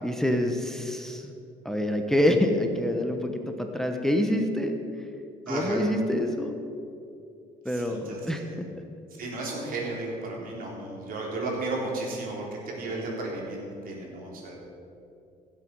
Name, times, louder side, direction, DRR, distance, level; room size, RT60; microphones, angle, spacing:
voice 1, 0.0-1.3 1.6-4.7 5.5-6.5 7.6-8.8, left 1 dB, 5° left, 4 dB, 1.0 m, -26 dB
voice 2, 5.5-5.8 7.7-8.5 9.2-14.6, right 2 dB, 55° right, -2 dB, 3.5 m, -34 dB
16.0 x 7.7 x 5.4 m, 2.6 s
cardioid pair, 110°, 17 cm